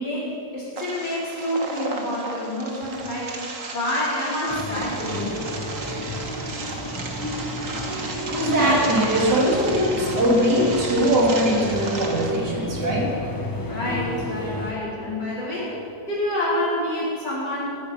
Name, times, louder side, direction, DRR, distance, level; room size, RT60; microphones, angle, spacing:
voice 1, 0.0-3.4 3.7-5.4 13.7-15.8 16.0-17.7, left 1 dB, 75° left, -8 dB, 5.7 m, -27 dB
sound 1, 0.8-12.4, right 3 dB, 50° right, 1.8 m, -34 dB
sound 2, 4.5-14.7, left 1 dB, 10° left, 1.5 m, -32 dB
voice 2, 8.0-13.1, equal, 70° right, -2 dB, 3.5 m, -21 dB
17.5 x 15.0 x 5.3 m, 2.6 s
omnidirectional pair, 1.9 m